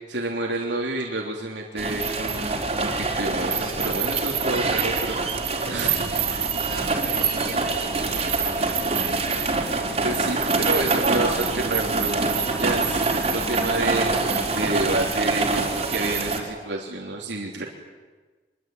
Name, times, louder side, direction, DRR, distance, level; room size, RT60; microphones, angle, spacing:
voice 1, 0.1-5.2 5.6-6.1 8.1-8.3 10.0-17.6, right 2 dB, 90° right, -1 dB, 3.5 m, -29 dB
sound 1, 1.8-16.4, right 3 dB, 35° right, 4.2 m, -25 dB
voice 2, 6.5-9.2 15.5-15.9, right 3 dB, 55° right, -2 dB, 2.8 m, -39 dB
25.5 x 22.5 x 9.4 m, 1.3 s
head